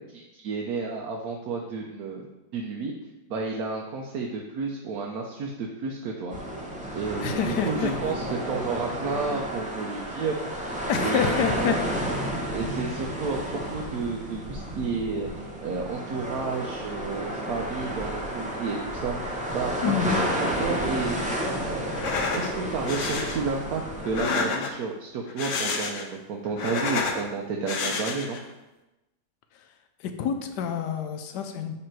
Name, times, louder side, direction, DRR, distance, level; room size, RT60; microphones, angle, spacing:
voice 1, 0.0-2.2 2.5-2.9 3.3-6.4 6.9-10.4 11.0-11.8 12.5-20.3 20.6-21.2 21.6-28.4, right 4 dB, 70° right, 0 dB, 1.1 m, -31 dB
sound 1, 6.3-24.2, equal, 10° right, 0.4 m, -31 dB
voice 2, 7.2-7.9 10.9-11.8 19.8-20.2 30.0-31.8, left 7 dB, 85° left, 6 dB, 1.2 m, -27 dB
sound 2, 21.9-22.5 22.9-23.4 24.0-24.9 25.3-26.1 26.4-27.2 27.7-28.4, left 4 dB, 60° left, 0.9 m, -29 dB
6.8 x 3.3 x 4.5 m, 1.0 s
omnidirectional pair, 1.8 m